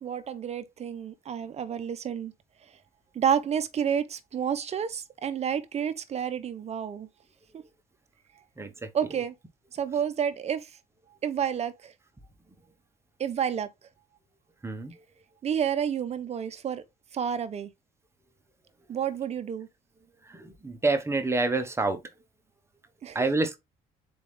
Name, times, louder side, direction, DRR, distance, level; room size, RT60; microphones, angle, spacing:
voice 1, 0.0-2.3 2.7-2.8 3.1-7.1 7.5-7.6 8.9-9.3 9.7-10.7 11.2-11.9 13.2-13.7 15.4-16.8 17.1-17.7 18.9-19.7 23.0-23.2, right 8 dB, 40° right, 0.6 m, -30 dB
voice 2, 8.6-8.9 14.6-14.9 20.3-22.0 23.1-23.6, right 3 dB, 15° right, 0.9 m, -27 dB
4.3 x 3.4 x 3.2 m
cardioid pair, 110°, 17 cm